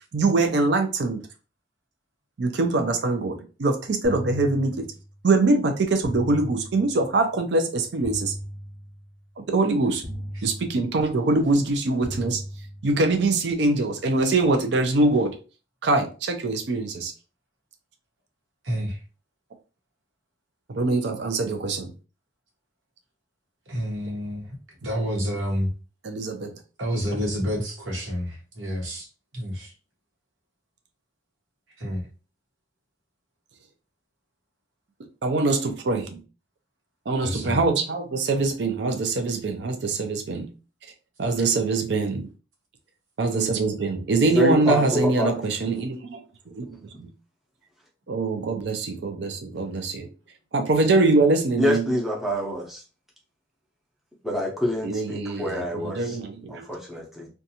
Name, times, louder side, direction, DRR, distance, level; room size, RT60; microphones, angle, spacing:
voice 1, 0.1-1.2 2.4-4.9 5.2-8.3 9.5-10.0 10.4-12.4 12.8-15.4 15.8-17.1 20.7-21.9 26.0-26.5 35.2-36.2 37.1-40.5 41.2-42.3 43.2-47.1 48.1-50.1 50.5-52.0 54.8-56.7, right 3 dB, 60° right, 5 dB, 0.4 m, -23 dB
sound 1, 4.0-5.2 6.0-7.2 8.0-9.2 10.0-11.2 12.0-13.2, equal, 30° left, 0.7 m, -37 dB
voice 2, 18.6-19.0 23.7-24.5 24.8-25.7 26.8-29.1 29.3-29.7 31.8-32.0 37.2-37.6, equal, 90° right, 0 dB, 1.0 m, -29 dB
voice 3, 44.3-45.3 51.6-52.8 54.2-56.2 56.5-57.3, left 1 dB, ahead, -3 dB, 0.6 m, -26 dB
2.5 x 2.3 x 2.7 m, 0.34 s
head